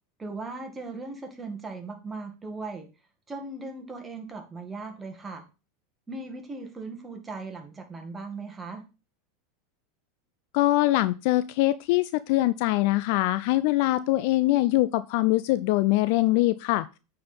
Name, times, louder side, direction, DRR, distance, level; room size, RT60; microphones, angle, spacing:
voice 1, 0.2-2.9 3.3-5.4 6.1-8.8, right 3 dB, 15° right, 4 dB, 2.1 m, -38 dB
voice 2, 10.5-16.9, left 17 dB, 65° left, 15 dB, 0.4 m, -23 dB
8.6 x 4.5 x 5.2 m, 0.31 s
hypercardioid pair, 105°, 0 cm